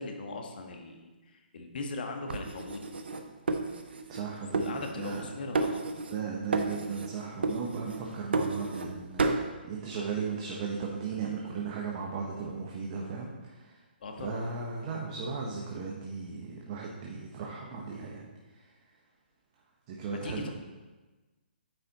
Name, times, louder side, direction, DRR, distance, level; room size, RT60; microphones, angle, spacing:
voice 1, 0.0-2.9 4.5-5.8 14.0-14.4 20.1-20.5, left 3 dB, 60° left, 3 dB, 1.3 m, -39 dB
sound 1, 2.3-4.2 4.5-5.3 5.5-6.2 6.5-7.1 7.4-8.9 9.2-9.5, right 3 dB, 75° right, 0.7 m, -31 dB
voice 2, 4.1-5.3 6.1-13.3 14.2-18.3 19.9-20.5, right 5 dB, 35° right, -1 dB, 0.9 m, -36 dB
9.0 x 4.2 x 4.0 m, 1.2 s
hypercardioid pair, 145°, 6 cm